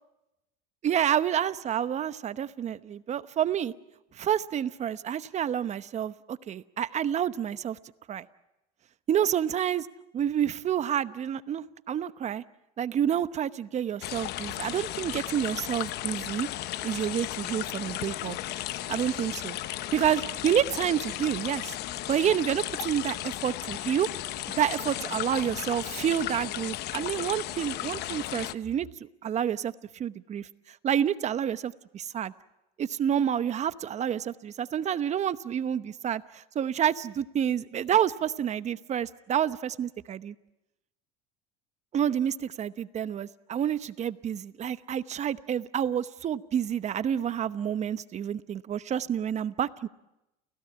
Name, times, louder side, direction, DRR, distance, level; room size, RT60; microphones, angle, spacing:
voice 1, 0.8-3.7 4.2-7.8 8.1-8.3 9.1-9.9 10.1-12.4 12.8-16.5 16.8-18.4 18.9-19.6 19.9-21.8 22.1-24.1 24.6-32.3 32.8-40.3 41.9-49.9, right 9 dB, 35° right, 14 dB, 0.9 m, -29 dB
sound 1, 14.0-28.5, left 14 dB, 50° left, 0.9 m, -35 dB
29.5 x 16.5 x 8.7 m, 0.95 s
supercardioid pair, 110°, 21 cm